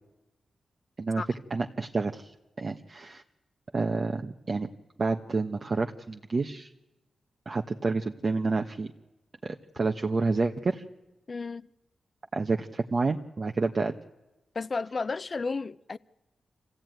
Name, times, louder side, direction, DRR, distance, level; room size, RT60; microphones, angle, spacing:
voice 1, 1.5-3.2 3.7-4.7 5.0-6.7 7.5-8.9 9.4-10.8 12.3-13.9, right 3 dB, 45° right, 1.1 m, -29 dB
voice 2, 11.3-11.7 14.5-16.0, left 4 dB, 45° left, 0.7 m, -32 dB
27.0 x 16.0 x 9.3 m
cardioid pair, 80°, 0 cm